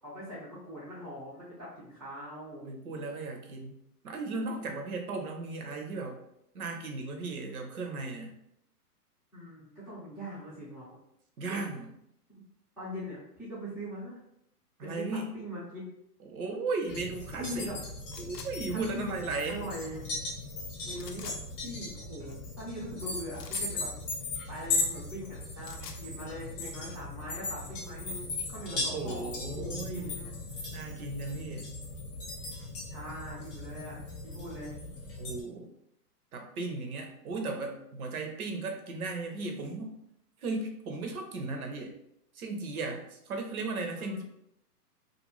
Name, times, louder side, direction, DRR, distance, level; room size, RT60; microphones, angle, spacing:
voice 1, 0.0-2.7 9.3-10.9 11.5-11.6 12.8-14.2 14.8-15.0 15.3-15.8 17.4-17.8 18.7-19.1 19.5-20.2 20.8-21.3 21.6-23.9 24.5-30.3 32.9-34.7 44.0-44.2, equal, ahead, -14 dB, 0.4 m, -42 dB
voice 2, 2.6-6.2 6.5-8.4 11.4-11.9 14.8-15.3 16.2-17.7 18.2-19.7 28.7-30.1 30.7-31.7 35.2-35.7 36.3-40.0 40.4-41.9 42.3-44.2, right 3 dB, 65° right, 3 dB, 0.8 m, -36 dB
sound 1, 16.9-35.4, left 3 dB, 35° left, 0.8 m, -38 dB
sound 2, 18.1-18.5 20.9-21.4 23.3-23.7 25.4-26.0, left 7 dB, 85° left, 0.6 m, -46 dB
2.5 x 2.2 x 3.0 m, 0.76 s
hypercardioid pair, 135°, 47 cm